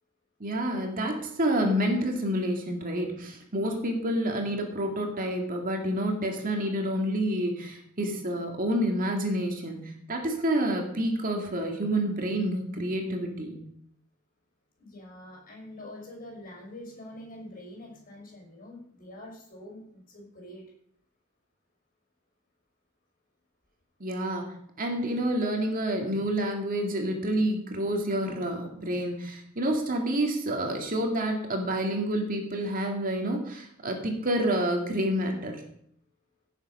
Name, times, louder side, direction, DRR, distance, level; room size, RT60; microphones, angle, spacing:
voice 1, 0.4-13.6 24.0-35.6, right 1 dB, 45° right, 2 dB, 2.3 m, -28 dB
voice 2, 14.8-20.6, left 1 dB, 45° left, 0 dB, 5.9 m, -45 dB
17.0 x 7.3 x 5.6 m, 0.68 s
head